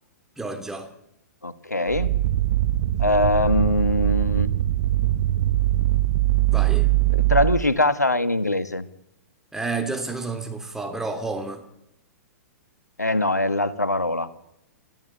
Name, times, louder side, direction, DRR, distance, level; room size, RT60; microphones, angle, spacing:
voice 1, 0.4-0.9 6.5-6.9 9.5-11.6, right 3 dB, 5° right, 3.0 m, -30 dB
voice 2, 1.4-2.1 3.0-4.5 7.1-8.8 13.0-14.3, left 2 dB, 85° left, 1.4 m, -22 dB
sound 1, 1.9-7.6, right 15 dB, 50° right, 1.1 m, -22 dB
29.5 x 14.0 x 8.9 m
figure-of-eight pair, 110°, 9 cm